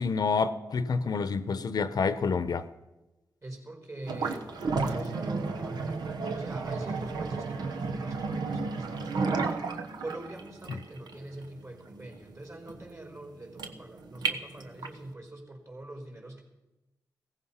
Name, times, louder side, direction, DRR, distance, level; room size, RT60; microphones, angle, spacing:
voice 1, 0.0-2.7, left 5 dB, 70° left, 0.8 m, -28 dB
voice 2, 3.4-9.6 10.0-16.4, right 1 dB, 40° right, 5.0 m, -44 dB
Water draining, 4.0-15.1, right 4 dB, 90° right, 1.2 m, -33 dB
16.5 x 15.5 x 5.7 m
cardioid pair, 65°, 7 cm